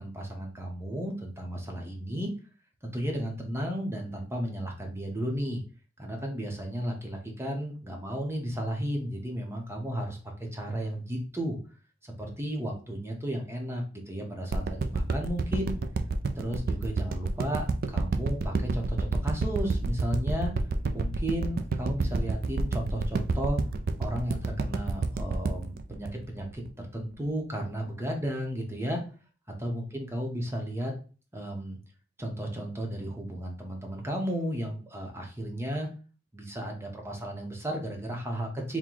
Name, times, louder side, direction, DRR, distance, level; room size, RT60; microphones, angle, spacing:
voice 1, 0.0-2.3 2.8-5.6 6.0-10.2 10.5-11.6 12.0-15.7 16.4-20.5 20.9-23.6 24.0-26.6 26.9-29.0 29.6-30.9 31.3-31.8 32.2-35.9 36.3-38.8, equal, 15° right, 1 dB, 0.8 m, -34 dB
sound 1, 14.5-26.8 27.3-27.4, right 3 dB, 55° right, 0.4 m, -29 dB
3.8 x 2.2 x 4.5 m, 0.36 s
head